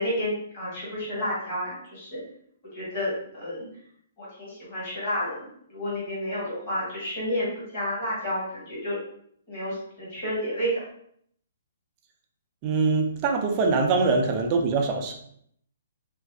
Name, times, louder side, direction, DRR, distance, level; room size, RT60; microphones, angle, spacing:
voice 1, 0.0-2.2 2.7-3.7 4.2-9.0 9.5-10.8, equal, 25° left, -7 dB, 1.4 m, -30 dB
voice 2, 12.6-15.1, right 4 dB, 20° right, 2 dB, 0.3 m, -23 dB
2.6 x 2.4 x 3.3 m, 0.66 s
hypercardioid pair, 175°, 0 cm